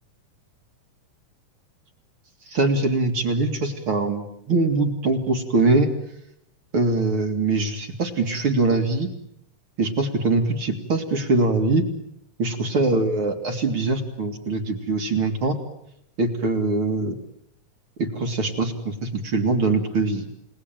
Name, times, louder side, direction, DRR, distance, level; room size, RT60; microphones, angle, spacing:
voice 1, 2.5-5.9 6.7-9.1 9.8-11.9 12.4-15.6 16.2-17.2 18.0-20.3, right 3 dB, 40° right, 6 dB, 2.7 m, -22 dB
30.0 x 19.0 x 9.1 m, 0.80 s
omnidirectional pair, 3.9 m